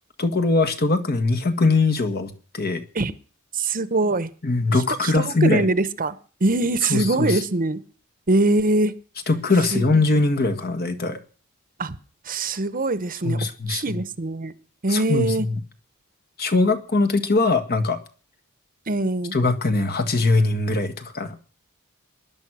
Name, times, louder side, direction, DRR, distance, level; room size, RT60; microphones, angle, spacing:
voice 1, 0.2-2.8 4.4-5.6 6.9-7.3 9.3-11.2 13.2-14.0 14.9-15.5 16.4-18.0 19.3-21.4, left 3 dB, 50° left, 1.6 m, -21 dB
voice 2, 3.5-4.3 4.7-6.1 6.4-7.8 8.3-8.9 9.7-10.0 11.8-12.0 12.2-14.5 14.8-15.5 18.9-19.3, right 2 dB, 40° right, 1.0 m, -23 dB
19.5 x 11.0 x 6.3 m
head